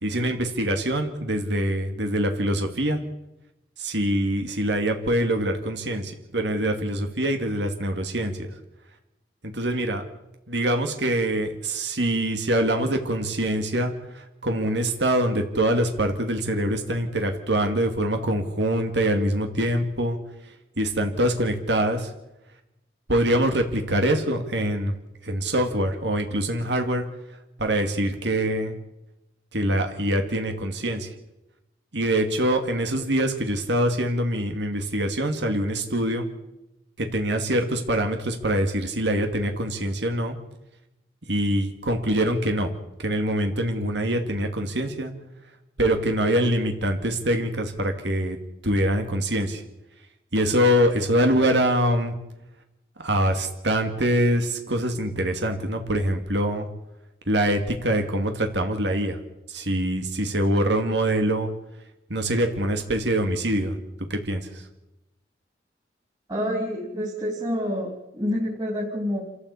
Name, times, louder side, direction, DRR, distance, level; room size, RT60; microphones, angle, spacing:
voice 1, 0.0-3.0 3.8-8.5 9.4-10.0 10.5-20.2 20.8-22.1 23.1-24.9 25.2-27.0 27.6-28.7 29.5-31.1 31.9-36.3 37.0-40.4 41.3-42.7 43.0-45.1 45.8-48.4 48.6-49.6 50.3-52.1 53.0-56.7 57.3-59.2 59.5-61.5 62.1-63.8 64.1-64.6, right 1 dB, 75° right, 5 dB, 2.4 m, -24 dB
voice 2, 66.3-69.2, equal, 20° right, -3 dB, 3.7 m, -28 dB
27.5 x 14.5 x 8.4 m, 0.94 s
head